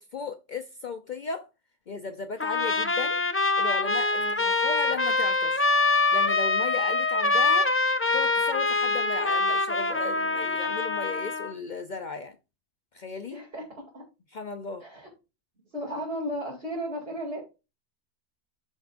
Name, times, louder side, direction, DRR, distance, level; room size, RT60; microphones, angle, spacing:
voice 1, 0.0-1.5 1.9-3.2 3.6-5.7 6.1-7.9 8.1-12.4 12.9-13.4 14.3-14.8, left 4 dB, 50° left, 0.7 m, -36 dB
Trumpet, 2.4-11.5, left 3 dB, 20° left, 0.4 m, -25 dB
voice 2, 4.2-4.5 13.3-14.0 14.8-15.1 15.7-17.4, equal, 60° right, 2.9 m, -35 dB
13.5 x 4.6 x 2.5 m
omnidirectional pair, 1.2 m